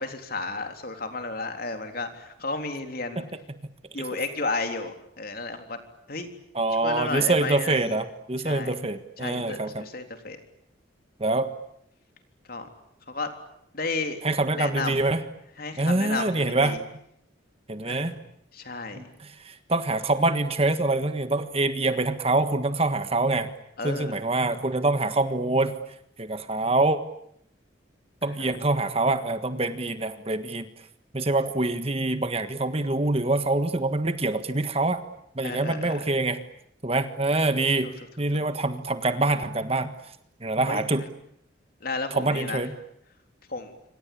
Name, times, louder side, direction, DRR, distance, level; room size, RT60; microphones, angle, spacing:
voice 1, 0.0-3.2 3.9-5.8 6.1-6.3 6.8-8.0 8.4-8.8 9.2-10.4 12.5-12.7 13.1-13.3 13.7-14.2 14.5-15.0 15.6-16.8 17.9-18.1 18.5-19.1 23.8-24.2 28.4-28.6 35.4-36.1 37.8-37.9 40.7-41.1 41.8-42.7 43.5-43.7, left 3 dB, 50° left, 6 dB, 3.7 m, -33 dB
voice 2, 6.5-9.8 11.2-11.5 14.2-15.2 15.8-16.8 17.7-18.1 18.9-23.5 23.8-25.7 26.2-27.0 28.2-30.7 31.1-35.0 35.4-36.4 36.8-39.9 40.4-41.0 42.2-42.7, right 2 dB, 30° right, 10 dB, 1.5 m, -25 dB
27.0 x 25.5 x 8.6 m, 0.75 s
head